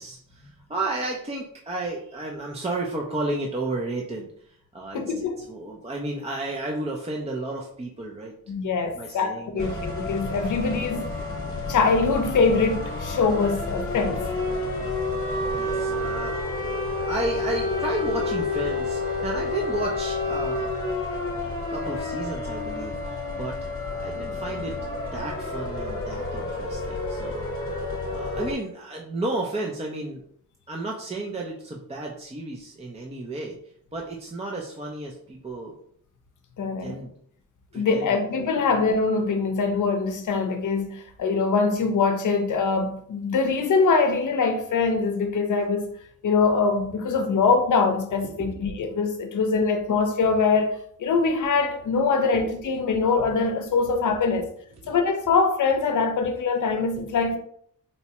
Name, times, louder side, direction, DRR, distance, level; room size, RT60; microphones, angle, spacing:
voice 1, 0.0-5.0 5.4-8.4 9.0-9.7 15.5-16.5 17.1-20.7 21.7-23.6 24.0-24.8 25.1-27.5 28.1-30.2 30.7-33.6 33.9-35.7 36.8-37.1 37.7-38.2 48.2-48.6 52.3-52.4 54.8-54.9, right 2 dB, 20° right, 0.5 m, -32 dB
voice 2, 4.9-5.4 8.5-11.0 11.7-14.2 36.6-37.0 37.7-45.9 46.2-54.5 54.9-57.4, left 4 dB, 60° left, 0.7 m, -23 dB
sound 1, 9.6-28.5, left 2 dB, 40° left, 1.0 m, -29 dB
4.2 x 2.2 x 2.9 m
cardioid pair, 85°, 35 cm